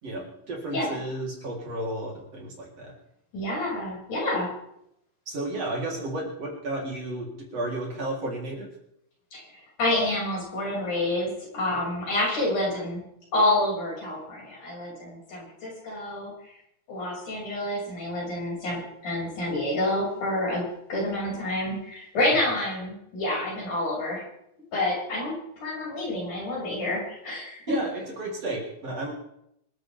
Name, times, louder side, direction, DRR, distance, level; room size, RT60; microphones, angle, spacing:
voice 1, 0.0-2.9 5.3-8.7 27.7-29.1, right 2 dB, 45° right, -2 dB, 4.6 m, -33 dB
voice 2, 3.3-4.5 9.3-9.4 9.8-13.0 13.3-16.3 16.9-20.6 20.9-24.2 24.7-27.6, left 1 dB, 65° left, -4 dB, 8.0 m, -28 dB
26.5 x 12.0 x 3.6 m, 0.76 s
omnidirectional pair, 3.9 m